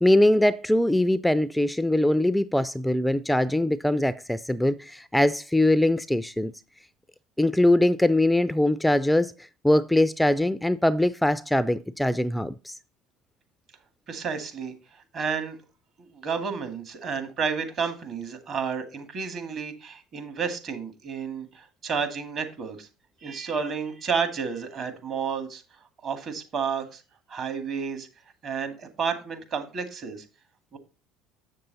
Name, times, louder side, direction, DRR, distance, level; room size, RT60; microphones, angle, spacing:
voice 1, 0.0-6.5 7.4-12.7, left 1 dB, 5° left, 0.4 m, -22 dB
voice 2, 14.1-15.6 16.0-22.9 23.2-25.6 26.0-27.0 27.3-28.1 28.4-30.2 30.7-30.8, right 6 dB, 50° right, 2.0 m, -31 dB
7.5 x 6.8 x 4.0 m
supercardioid pair, 85°, 0 cm